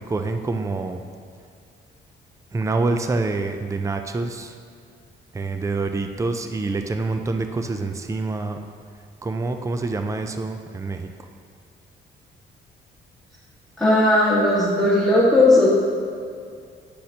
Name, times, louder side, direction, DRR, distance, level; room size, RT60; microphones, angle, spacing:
voice 1, 0.1-1.0 2.5-4.5 5.3-8.6 9.2-11.1, right 3 dB, 15° right, 6 dB, 0.5 m, -26 dB
voice 2, 13.8-15.7, left 2 dB, 5° left, -11 dB, 1.8 m, -16 dB
10.0 x 6.3 x 2.9 m, 2.3 s
cardioid pair, 90°, 20 cm